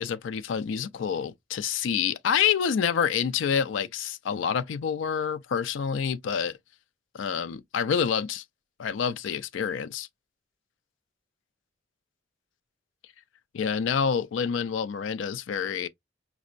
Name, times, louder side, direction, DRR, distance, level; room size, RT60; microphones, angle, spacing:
voice 1, 0.0-6.6 7.1-8.4 8.8-10.1 13.5-15.9, left 7 dB, 70° left, 0.4 m, -27 dB
5.1 x 2.0 x 2.5 m
head